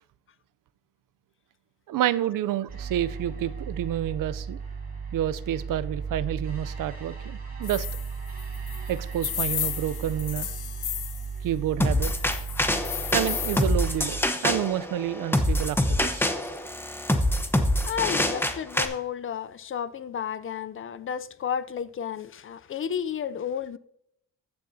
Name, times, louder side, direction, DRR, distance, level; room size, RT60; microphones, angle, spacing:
voice 1, 1.9-4.6 5.1-7.9 8.9-10.5 11.4-12.1 13.1-16.3, right 11 dB, 75° right, 0.5 m, -29 dB
sound 1, 2.7-14.2, right 5 dB, 30° right, 4.1 m, -36 dB
sound 2, 7.6-11.3 12.0-13.7, left 10 dB, 65° left, 1.0 m, -33 dB
sound 3, 11.8-18.9, left 1 dB, 5° left, 0.8 m, -25 dB
voice 2, 17.8-23.8, left 8 dB, 40° left, 0.4 m, -32 dB
14.5 x 9.3 x 2.7 m
wide cardioid pair, 160°, 33 cm